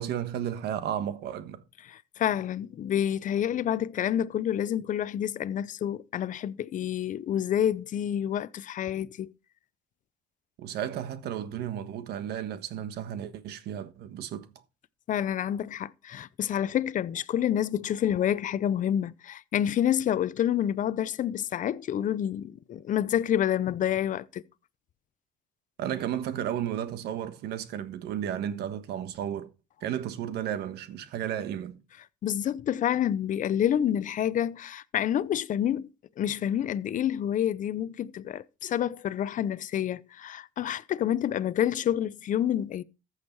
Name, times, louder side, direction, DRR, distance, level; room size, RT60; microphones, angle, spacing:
voice 1, 0.0-1.6 10.6-14.5 25.8-29.5 29.8-31.8, right 10 dB, 75° right, 1.4 m, -33 dB
voice 2, 1.9-9.3 15.1-24.4 32.2-35.9 36.2-42.8, left 10 dB, 50° left, 0.7 m, -28 dB
14.0 x 6.5 x 4.6 m
cardioid pair, 110°, 17 cm